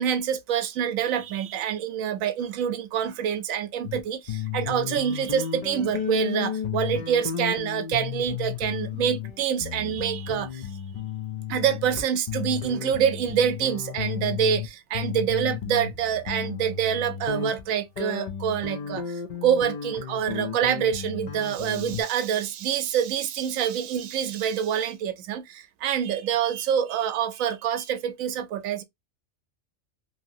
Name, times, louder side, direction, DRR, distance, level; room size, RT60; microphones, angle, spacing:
voice 1, 0.0-10.7 11.5-28.8, right 8 dB, 85° right, 1.0 m, -26 dB
sound 1, 3.8-4.0 4.3-14.7 14.9-22.0, left 9 dB, 85° left, 0.3 m, -33 dB
2.8 x 2.7 x 2.5 m
omnidirectional pair, 1.4 m